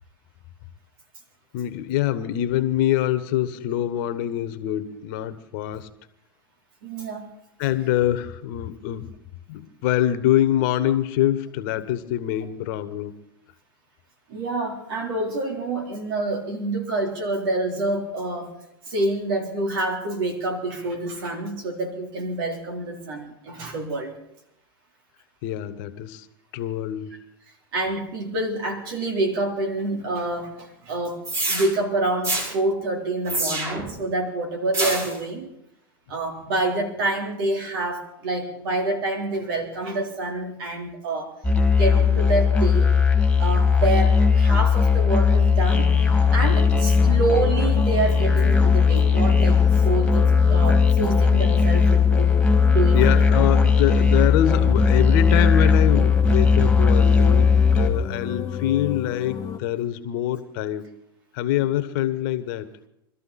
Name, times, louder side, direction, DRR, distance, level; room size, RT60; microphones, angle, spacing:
voice 1, 1.5-5.9 7.6-9.2 9.5-13.2 25.4-26.3 26.5-27.2 52.9-60.9 61.3-62.7, left 12 dB, 60° left, 12 dB, 1.2 m, -25 dB
voice 2, 6.8-7.3 14.3-18.5 18.9-24.1 27.7-35.5 36.1-41.3 41.7-42.9 43.4-52.4 52.6-53.2, right 2 dB, 70° right, 2 dB, 3.9 m, -27 dB
sound 1, 31.2-31.7 32.2-32.5 33.3-33.9 34.7-35.1, right 2 dB, 25° right, 5.5 m, -25 dB
Musical instrument, 41.4-57.9, left 5 dB, 5° left, 2.5 m, -18 dB
sound 2, 45.7-59.6, left 9 dB, 30° left, 1.0 m, -33 dB
23.0 x 13.5 x 4.2 m, 0.79 s
hypercardioid pair, 100°, 12 cm